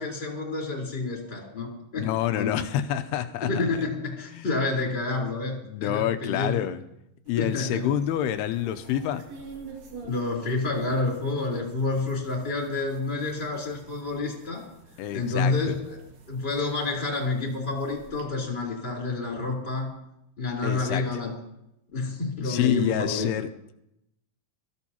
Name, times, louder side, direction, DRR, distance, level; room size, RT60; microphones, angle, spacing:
voice 1, 0.0-2.5 3.4-6.6 7.4-7.9 10.0-14.6 15.1-16.0 16.3-19.9 20.4-21.4 21.9-23.3, left 3 dB, 15° left, -2 dB, 3.2 m, -29 dB
voice 2, 2.0-3.5 4.3-4.5 5.6-6.8 7.3-9.2 15.0-15.8 20.6-21.0 22.5-23.7, left 11 dB, 80° left, 9 dB, 2.7 m, -27 dB
sound 1, 7.3-18.2, right 4 dB, 70° right, 4.1 m, -49 dB
22.5 x 14.5 x 2.9 m, 0.83 s
omnidirectional pair, 4.7 m